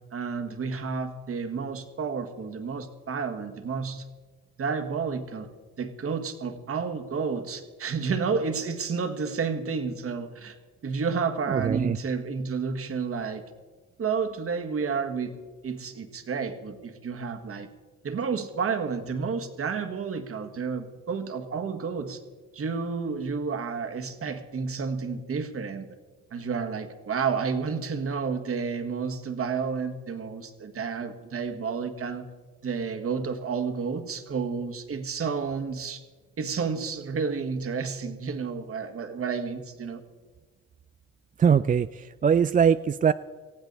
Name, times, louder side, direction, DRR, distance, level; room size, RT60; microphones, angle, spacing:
voice 1, 0.1-4.0 4.6-5.5 5.8-10.6 10.8-13.4 14.0-15.3 15.6-17.7 18.0-22.2 22.5-25.9 26.3-32.2 32.6-36.0 36.4-40.0, right 5 dB, 50° right, 7 dB, 1.7 m, -30 dB
voice 2, 11.5-12.0 41.4-43.1, right 7 dB, 30° right, 12 dB, 0.4 m, -22 dB
19.0 x 15.0 x 4.0 m, 1.4 s
cardioid pair, 90°, 30 cm